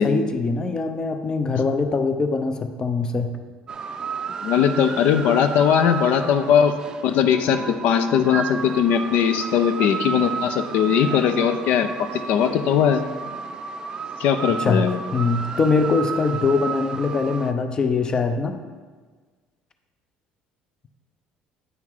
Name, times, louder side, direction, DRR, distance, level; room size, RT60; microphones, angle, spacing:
voice 1, 0.0-3.3 14.6-18.6, left 4 dB, 25° left, 8 dB, 0.6 m, -22 dB
sound 1, 3.7-17.5, right 6 dB, 30° right, 0.5 m, -32 dB
voice 2, 4.4-6.7 7.0-13.0 14.2-15.0, left 8 dB, 70° left, 9 dB, 0.6 m, -20 dB
9.4 x 5.7 x 4.6 m, 1.5 s
cardioid pair, 130°, 3 cm